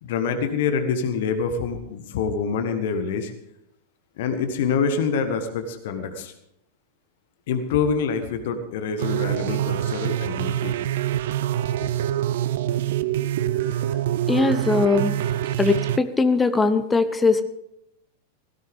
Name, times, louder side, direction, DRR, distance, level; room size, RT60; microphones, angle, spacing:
voice 1, 0.0-3.3 4.2-6.3 7.5-10.8, left 6 dB, 55° left, 8 dB, 1.5 m, -26 dB
sound 1, 9.0-16.0, right 12 dB, 55° right, 0.5 m, -25 dB
voice 2, 14.3-15.2 15.6-17.4, left 3 dB, 15° left, 11 dB, 0.9 m, -20 dB
17.0 x 16.0 x 3.6 m, 0.81 s
figure-of-eight pair, 90°, 0 cm